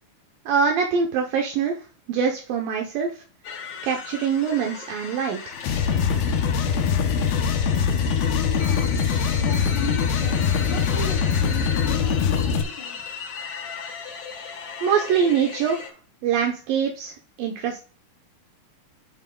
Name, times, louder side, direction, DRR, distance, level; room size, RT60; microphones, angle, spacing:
voice 1, 0.5-1.8 2.1-3.1 3.8-5.5 14.8-15.9 16.2-17.1 17.4-17.8, right 7 dB, 75° right, 2 dB, 2.6 m, -23 dB
sound 1, 3.4-15.9, left 5 dB, 50° left, 1.7 m, -36 dB
sound 2, 5.6-12.6, left 6 dB, 85° left, 2.7 m, -22 dB
voice 2, 8.6-8.9 9.4-13.1, left 4 dB, 35° left, 0 dB, 3.7 m, -36 dB
11.5 x 7.1 x 2.3 m, 0.36 s
omnidirectional pair, 4.2 m